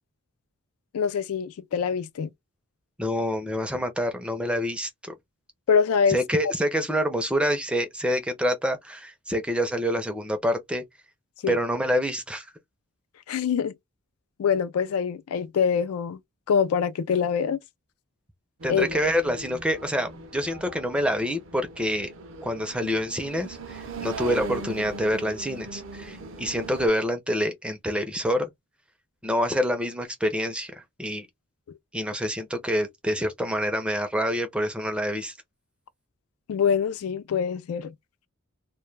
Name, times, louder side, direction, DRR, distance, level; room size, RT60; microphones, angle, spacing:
voice 1, 0.9-2.3 5.7-6.2 11.4-11.6 13.3-13.7 14.4-16.2 16.5-17.6 18.7-18.9 36.5-37.9, left 6 dB, 75° left, 0.3 m, -24 dB
voice 2, 3.0-5.1 6.1-10.8 11.5-12.5 18.6-22.1 22.4-28.5 29.2-31.3 31.9-35.3, equal, 5° right, 0.4 m, -27 dB
sound 1, 18.6-26.9, right 3 dB, 55° right, 0.5 m, -39 dB
2.2 x 2.2 x 3.1 m
head